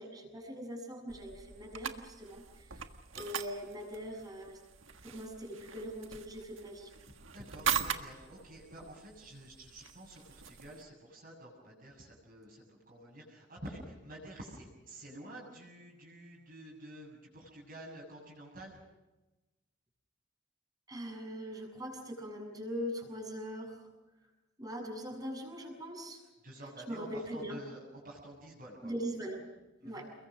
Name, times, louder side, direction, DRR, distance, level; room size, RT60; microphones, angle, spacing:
voice 1, 0.0-2.8 3.2-4.6 5.0-6.9 20.9-23.8 24.6-26.2 26.9-27.6 28.8-29.4 29.8-30.1, equal, 20° right, 2 dB, 7.2 m, -41 dB
sound 1, 1.1-10.8, right 8 dB, 75° right, 1.6 m, -41 dB
voice 2, 7.3-18.8 26.4-28.9 29.8-30.0, right 1 dB, 45° right, -4 dB, 7.4 m, -49 dB
29.0 x 22.5 x 6.4 m, 1.1 s
head